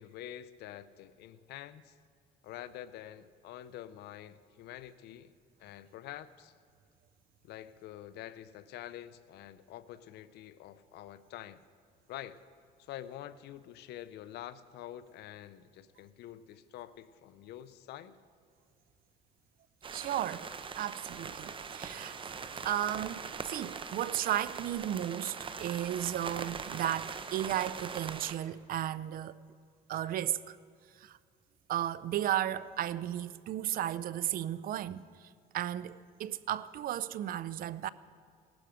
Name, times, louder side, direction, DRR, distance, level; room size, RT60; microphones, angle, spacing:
voice 1, 0.0-1.9 2.4-5.3 5.6-6.5 7.4-11.6 12.1-12.4 12.8-18.1, left 12 dB, 75° left, 0.6 m, -47 dB
sound 1, 19.8-28.3, right 5 dB, 30° right, 0.8 m, -42 dB
voice 2, 19.9-20.5 20.8-22.2 22.4-29.4 29.9-30.6 30.9-31.2 31.7-37.9, right 12 dB, 60° right, 0.5 m, -34 dB
18.0 x 12.0 x 5.0 m
cardioid pair, 110°, 17 cm